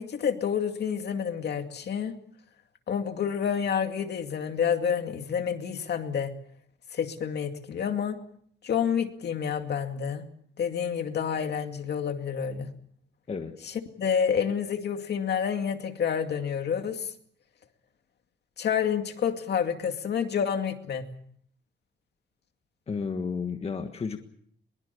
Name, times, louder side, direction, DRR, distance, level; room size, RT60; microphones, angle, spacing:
voice 1, 0.0-2.2 2.9-6.3 6.9-8.2 8.6-10.2 10.6-12.7 13.6-17.1 18.6-21.1, left 7 dB, 60° left, 6 dB, 2.4 m, -29 dB
voice 2, 13.3-13.7 22.9-24.2, left 5 dB, 30° left, 5 dB, 1.6 m, -32 dB
22.5 x 22.5 x 6.9 m, 0.64 s
wide cardioid pair, 160°, 20 cm